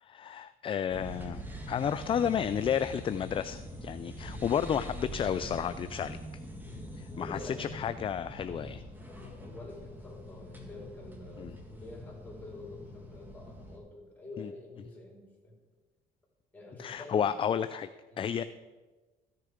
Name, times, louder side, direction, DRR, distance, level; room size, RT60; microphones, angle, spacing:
voice 1, 0.0-6.2 7.2-8.8 11.4-11.5 14.4-14.5 16.8-17.9 18.2-18.4, left 8 dB, 30° left, 12 dB, 0.4 m, -32 dB
sound 1, 0.9-13.8, equal, 10° right, 1.8 m, -44 dB
voice 2, 6.6-7.6 8.5-8.8 9.4-15.6 16.5-17.5 18.1-18.5, left 2 dB, 10° left, -3 dB, 4.0 m, -47 dB
14.5 x 6.7 x 5.0 m, 1.3 s
cardioid pair, 110°, 17 cm